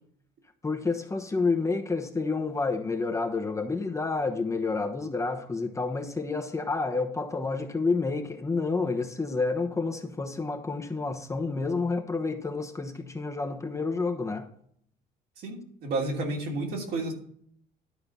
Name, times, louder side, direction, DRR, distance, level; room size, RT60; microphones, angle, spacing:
voice 1, 0.6-14.5, left 3 dB, 15° left, 1.0 m, -29 dB
voice 2, 15.4-17.1, right 2 dB, 70° right, 3.0 m, -31 dB
12.0 x 4.4 x 5.4 m
cardioid pair, 110°, 17 cm